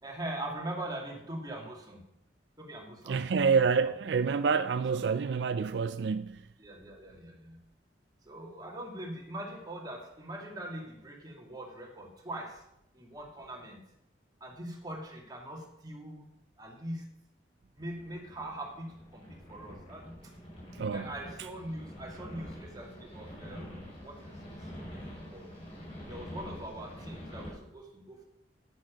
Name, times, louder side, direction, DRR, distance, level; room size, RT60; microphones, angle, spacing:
voice 1, 0.0-2.0 2.6-3.9 4.7-5.0 6.6-7.6 8.2-12.7 12.9-13.8 14.4-16.3 16.6-17.1 17.7-20.1 20.9-24.7 25.0-25.5 26.1-28.3, right 1 dB, 20° right, 2.4 m, -42 dB
voice 2, 3.1-6.4 20.8-21.1, right 5 dB, 70° right, 0.4 m, -27 dB
sound 1, 17.8-27.5, equal, 35° left, 4.8 m, -46 dB
10.5 x 9.9 x 5.2 m
head